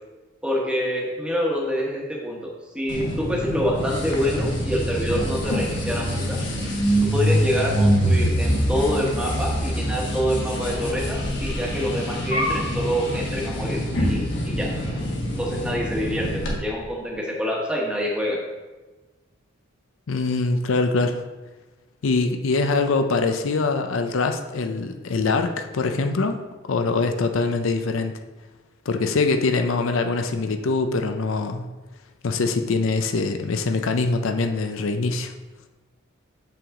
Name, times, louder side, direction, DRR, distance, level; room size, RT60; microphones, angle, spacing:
voice 1, 0.4-6.4 7.0-14.7 15.4-18.4, equal, 5° right, -2 dB, 1.2 m, -26 dB
sound 1, 2.9-16.5, equal, 55° left, 1.4 m, -25 dB
voice 2, 20.1-21.2 22.0-26.4 26.7-28.1 28.9-31.7 32.2-35.3, left 3 dB, 75° left, 6 dB, 0.5 m, -23 dB
7.0 x 5.8 x 3.7 m, 1.2 s
head